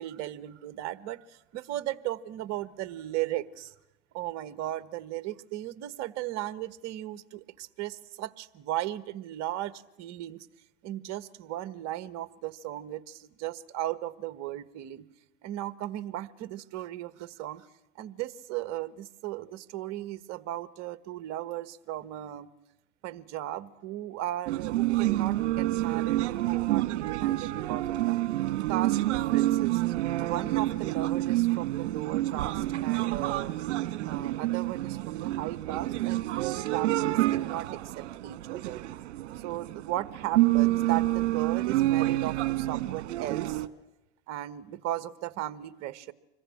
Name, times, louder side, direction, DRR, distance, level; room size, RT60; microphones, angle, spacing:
voice 1, 0.0-3.7 4.1-10.5 10.8-15.1 15.4-17.7 18.0-22.5 23.0-28.2 28.7-29.8 30.2-33.5 34.1-38.8 39.4-43.6 44.3-46.1, right 14 dB, 50° right, 16 dB, 1.4 m, -36 dB
sound 1, 24.5-43.7, right 16 dB, 70° right, 1.6 m, -28 dB
26.0 x 21.5 x 8.7 m, 0.95 s
hypercardioid pair, 100°, 35 cm